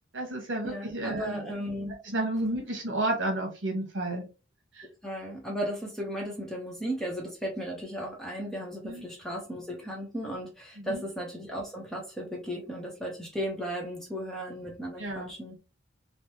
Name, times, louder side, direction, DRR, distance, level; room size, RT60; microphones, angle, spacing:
voice 1, 0.1-1.5 2.1-4.3 4.7-4.9 8.8-9.1 10.8-11.0 15.0-15.3, right 1 dB, 70° right, 2 dB, 1.2 m, -31 dB
voice 2, 0.6-1.9 5.0-15.6, equal, ahead, -2 dB, 0.8 m, -35 dB
3.3 x 2.1 x 2.8 m, 0.31 s
head